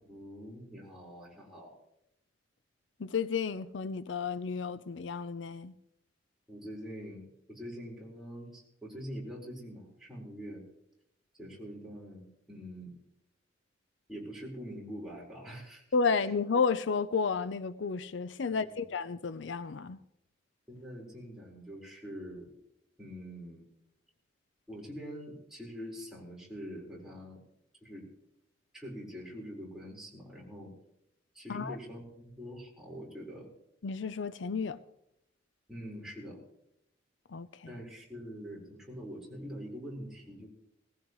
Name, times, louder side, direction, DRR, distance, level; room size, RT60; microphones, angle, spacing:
voice 1, 0.0-1.8 6.5-10.6 11.4-12.9 14.1-15.8 16.1-16.3 18.4-18.7 20.7-22.5 23.0-23.6 24.7-27.4 27.8-28.0 28.7-30.7 31.3-33.5 35.7-36.4 37.6-40.5, equal, ahead, 4.5 m, -44 dB
voice 2, 3.0-5.7 15.9-20.0 31.5-31.8 33.8-34.8 37.3-37.7, left 5 dB, 75° left, 0.5 m, -32 dB
19.0 x 15.5 x 3.1 m
head